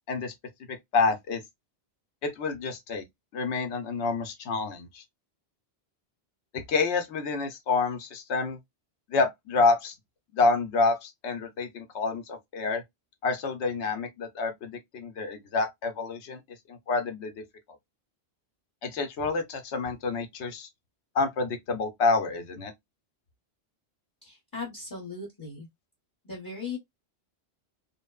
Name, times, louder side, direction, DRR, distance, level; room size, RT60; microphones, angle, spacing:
voice 1, 0.7-1.4 2.2-3.0 3.3-5.0 6.5-8.6 9.1-9.9 10.3-12.8 13.2-16.4 16.7-17.4 18.8-20.7 21.1-22.7, left 3 dB, 80° left, 1.0 m, -28 dB
voice 2, 24.2-25.7 26.2-26.8, left 4 dB, 20° left, 0.8 m, -38 dB
3.0 x 2.0 x 2.2 m
omnidirectional pair, 1.1 m